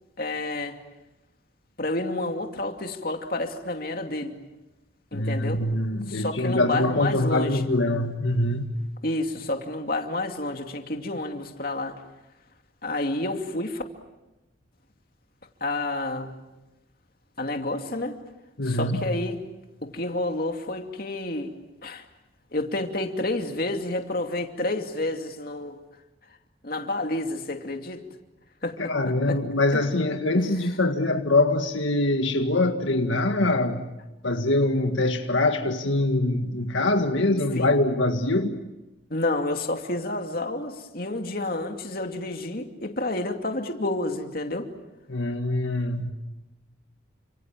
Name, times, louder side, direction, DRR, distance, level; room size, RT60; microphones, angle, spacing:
voice 1, 0.2-0.8 1.8-4.3 5.1-5.6 6.1-7.7 9.0-12.0 12.8-13.8 15.6-16.3 17.4-18.2 18.6-19.4 19.8-21.5 21.8-22.0 22.5-25.8 26.6-28.0 28.6-28.9 29.3-29.4 29.7-30.0 30.3-30.7 37.5-37.7 39.1-44.7, left 2 dB, 50° left, 2.6 m, -29 dB
voice 2, 5.1-8.8 18.6-19.0 28.8-33.9 34.2-38.5 45.1-46.1, left 2 dB, 85° left, 1.9 m, -24 dB
30.0 x 27.0 x 7.4 m
head